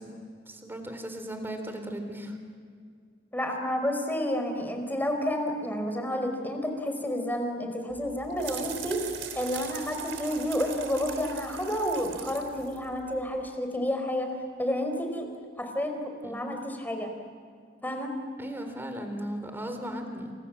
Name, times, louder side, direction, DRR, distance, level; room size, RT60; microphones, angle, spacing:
voice 1, 0.0-2.4 16.2-16.5 18.4-20.3, equal, 10° right, 6 dB, 3.9 m, -37 dB
voice 2, 3.3-9.0 9.4-14.3 14.6-15.3 15.6-17.1 17.8-18.1, equal, 10° left, 4 dB, 4.4 m, -30 dB
sound 1, 7.9-13.5, right 6 dB, 90° right, 3.6 m, -40 dB
29.5 x 26.5 x 7.5 m, 2.2 s
head